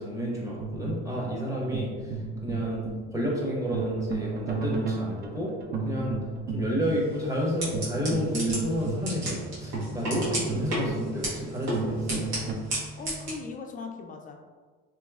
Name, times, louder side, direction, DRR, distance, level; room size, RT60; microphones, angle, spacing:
voice 1, 0.0-2.1 2.4-2.8 3.1-5.6 5.8-6.2 6.5-12.2, equal, 10° right, -4 dB, 0.8 m, -30 dB
sound 1, 0.6-12.5, right 4 dB, 35° right, 0.4 m, -34 dB
sound 2, 6.8-13.3, right 1 dB, 75° right, 1.4 m, -34 dB
voice 2, 12.9-14.4, left 4 dB, 30° left, 3 dB, 0.4 m, -39 dB
3.3 x 3.0 x 2.3 m, 1.5 s
supercardioid pair, 110°, 30 cm